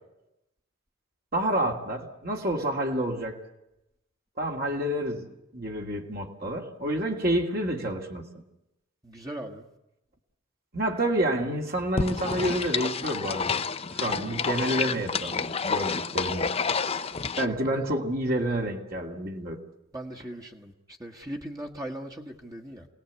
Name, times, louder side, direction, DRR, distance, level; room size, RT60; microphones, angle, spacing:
voice 1, 1.3-3.4 4.4-5.3 5.5-8.3 10.7-13.6 13.9-16.5 17.4-19.6, right 1 dB, 45° right, 1 dB, 2.5 m, -29 dB
voice 2, 9.0-9.7 19.9-22.9, right 1 dB, 20° right, 1 dB, 1.6 m, -39 dB
sound 1, 12.0-17.5, left 5 dB, 30° left, 0.8 m, -29 dB
27.0 x 19.0 x 8.3 m, 0.89 s
head